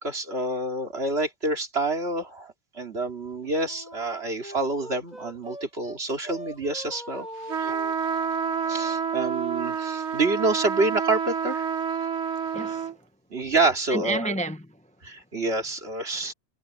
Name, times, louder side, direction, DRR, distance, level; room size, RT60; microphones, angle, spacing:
voice 1, 0.0-7.3 7.6-7.7 8.7-11.7 13.3-14.3 15.0-16.3, right 3 dB, 65° right, 3.0 m, -27 dB
Wind instrument woodwind instrument, 3.4-6.0 6.2-9.0, right 1 dB, 40° right, 8.2 m, -42 dB
sound 1, 7.5-12.9, right 7 dB, 85° right, 1.3 m, -28 dB
voice 2, 12.5-13.1 13.9-14.9 16.0-16.3, right 2 dB, 10° left, 0.7 m, -32 dB
omnidirectional pair, 1.1 m